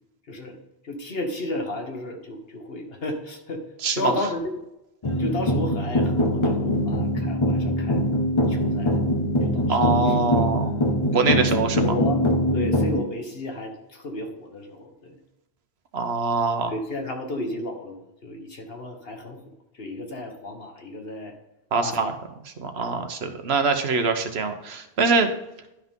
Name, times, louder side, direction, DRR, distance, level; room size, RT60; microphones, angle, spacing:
voice 1, 0.8-3.6 3.9-4.6 5.2-8.0 8.5-9.0 9.4-10.4 11.1-15.2 16.7-19.4 19.7-21.3 21.8-22.1 22.7-23.0 25.1-25.2, left 1 dB, 70° left, 3 dB, 1.6 m, -33 dB
voice 2, 3.8-4.1 9.7-10.7 11.1-11.9 15.9-16.7 21.7-22.1 22.6-25.3, right 4 dB, 85° right, 7 dB, 1.2 m, -23 dB
sound 1, 5.0-13.0, equal, 30° left, 0.9 m, -23 dB
11.5 x 5.9 x 3.7 m, 0.91 s
omnidirectional pair, 1.1 m